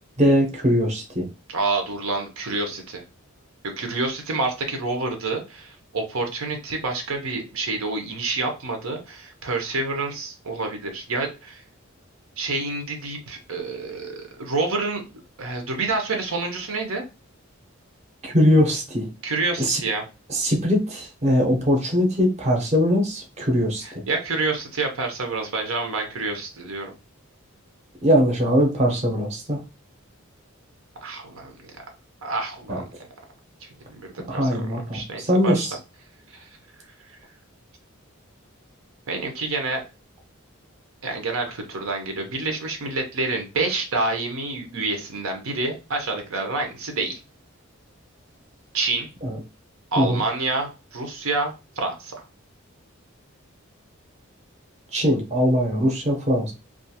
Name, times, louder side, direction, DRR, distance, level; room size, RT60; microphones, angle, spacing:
voice 1, 0.2-1.2 18.2-19.1 19.6-19.8 20.3-24.0 28.0-29.6 32.7-32.8 34.3-35.8 49.2-49.4 50.0-50.2 54.9-56.5, equal, 30° right, 1 dB, 0.7 m, -21 dB
voice 2, 1.5-3.0 3.8-11.6 12.4-17.0 19.2-20.0 23.8-26.9 31.0-31.7 32.2-32.8 33.6-34.6 34.9-35.7 36.3-36.5 37.1-37.2 39.1-39.8 41.0-47.1 48.7-49.1 49.9-52.2, right 3 dB, 80° right, 3 dB, 0.7 m, -28 dB
2.4 x 2.3 x 2.8 m, 0.29 s
head